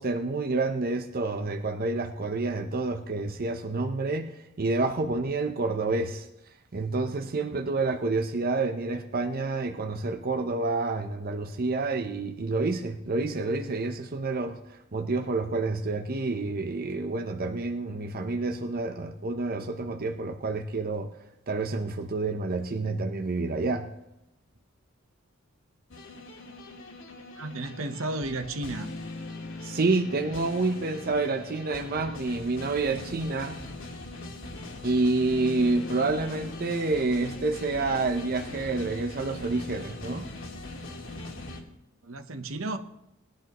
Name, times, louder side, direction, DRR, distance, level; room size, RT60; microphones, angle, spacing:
voice 1, 0.0-6.3 6.7-21.1 21.5-23.9 29.6-33.6 34.8-40.3, right 3 dB, 45° right, 0.8 m, -28 dB
sound 1, 25.9-41.6, left 2 dB, 65° left, 2.0 m, -40 dB
voice 2, 27.4-28.9 42.0-42.8, right 2 dB, 70° right, 1.0 m, -33 dB
19.0 x 11.5 x 3.0 m
head